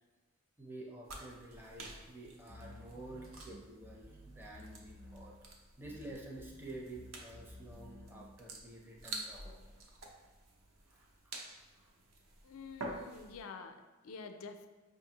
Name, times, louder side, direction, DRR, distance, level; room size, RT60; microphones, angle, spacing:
voice 1, 0.6-5.3 5.8-9.7 10.9-11.4 11.8-11.9, right 2 dB, 10° right, -2 dB, 0.5 m, -50 dB
sound 1, 1.0-13.5, right 2 dB, 70° right, 0.6 m, -50 dB
sound 2, 2.5-5.6 5.8-8.4, left 1 dB, 55° right, 1.0 m, -54 dB
voice 2, 12.4-14.7, left 4 dB, 80° left, 7 dB, 0.4 m, -48 dB
5.2 x 2.5 x 2.8 m, 1.3 s
head